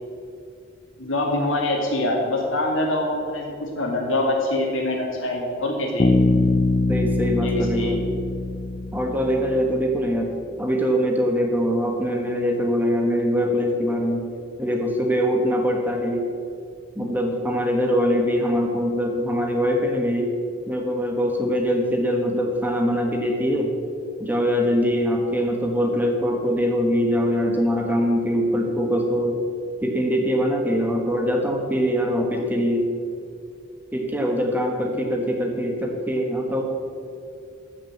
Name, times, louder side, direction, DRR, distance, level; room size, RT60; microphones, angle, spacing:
voice 1, 1.0-6.3 7.4-7.9, left 1 dB, 70° left, 0 dB, 2.6 m, -24 dB
Bass guitar, 6.0-9.7, left 2 dB, 25° left, 0.4 m, -22 dB
voice 2, 6.9-8.1 8.9-10.3 10.6-14.3 14.6-16.2 16.9-20.3 20.7-23.7 24.2-29.4 29.8-32.9 33.9-36.6, equal, 10° right, 1 dB, 1.2 m, -23 dB
14.0 x 6.2 x 7.4 m, 2.4 s
head